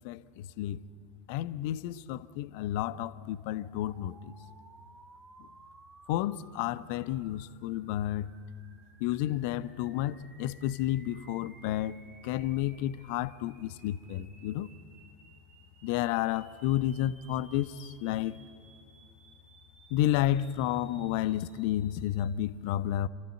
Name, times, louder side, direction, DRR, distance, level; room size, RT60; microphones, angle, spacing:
voice 1, 0.0-0.8 1.3-4.3 6.1-8.3 9.0-14.7 15.8-18.4 19.9-23.1, left 13 dB, 55° left, 0.6 m, -31 dB
sound 1, 3.1-22.1, right 3 dB, 20° right, 3.1 m, -58 dB
29.0 x 13.5 x 8.3 m
figure-of-eight pair, 85°, 0 cm